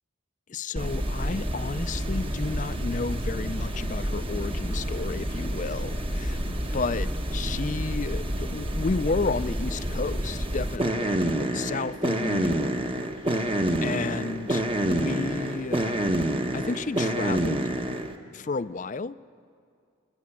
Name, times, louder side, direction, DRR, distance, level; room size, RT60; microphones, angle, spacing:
voice 1, 0.5-12.8 13.3-13.5 13.8-16.1 16.5-17.7 18.3-19.2, left 4 dB, 35° left, 15 dB, 0.4 m, -32 dB
sound 1, 0.8-18.2, right 1 dB, 25° right, 1.1 m, -28 dB
29.0 x 12.0 x 8.8 m, 2.3 s
head